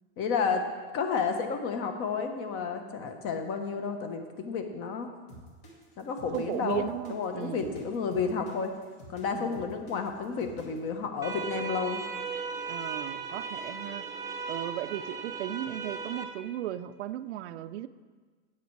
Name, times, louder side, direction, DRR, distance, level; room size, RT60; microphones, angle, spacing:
voice 1, 0.2-0.6 0.9-5.1 6.0-8.7 9.1-12.0, left 5 dB, 40° left, 6 dB, 1.2 m, -31 dB
sound 1, 5.3-10.9, right 1 dB, 60° left, 2.4 m, -50 dB
voice 2, 6.3-7.8 9.3-9.5 12.7-14.0 14.5-17.9, right 12 dB, 90° right, 13 dB, 0.5 m, -36 dB
sound 2, 11.2-16.2, right 5 dB, 10° right, 0.7 m, -36 dB
9.4 x 8.4 x 4.7 m, 1.4 s
supercardioid pair, 135°, 33 cm